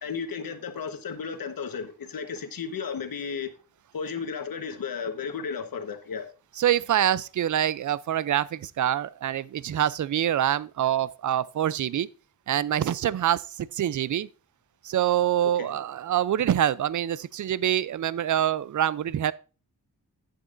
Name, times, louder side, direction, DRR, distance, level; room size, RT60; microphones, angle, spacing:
voice 1, 0.0-3.5 3.9-6.3 15.4-15.8, left 6 dB, 70° left, 1.2 m, -34 dB
voice 2, 6.6-12.1 12.5-13.5 13.7-14.3 14.8-19.3, right 11 dB, 55° right, 0.5 m, -25 dB
10.0 x 8.7 x 2.5 m
wide cardioid pair, 95°, 36 cm